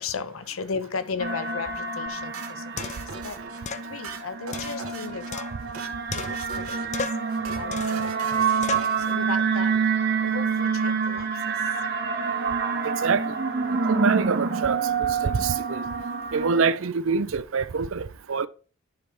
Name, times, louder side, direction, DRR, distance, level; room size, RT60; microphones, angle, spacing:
voice 1, 0.0-2.9 3.2-3.4 3.9-5.5 6.1-6.2 6.6-6.8 7.5-8.3 8.7-9.8 10.2-11.3, left 5 dB, 75° left, 0.7 m, -35 dB
sound 1, 1.2-16.7, right 5 dB, 50° right, 1.1 m, -27 dB
sound 2, 2.1-2.2 2.8-3.2 3.7-3.9 4.5-5.8 6.1-6.6 6.9-7.3 7.7-8.1 8.6-9.0, left 5 dB, 35° left, 0.4 m, -35 dB
sound 3, 2.3-3.6 3.9-5.3 5.6-5.9 6.2-7.0 7.3-7.6 7.9-9.2, right 5 dB, 85° right, 1.2 m, -40 dB
voice 2, 12.8-13.3 13.9-14.9 15.2-15.8 16.3-18.5, right 5 dB, 65° right, 0.5 m, -25 dB
10.0 x 3.5 x 5.0 m
head